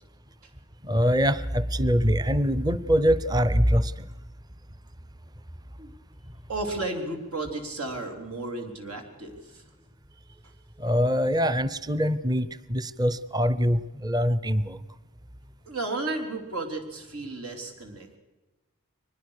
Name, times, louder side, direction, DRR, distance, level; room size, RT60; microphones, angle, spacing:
voice 1, 0.9-3.9 10.8-14.8, equal, 20° right, 16 dB, 0.6 m, -23 dB
voice 2, 6.5-9.6 15.7-18.2, right 2 dB, 90° right, 4 dB, 3.7 m, -33 dB
24.0 x 20.5 x 6.6 m, 1.2 s
head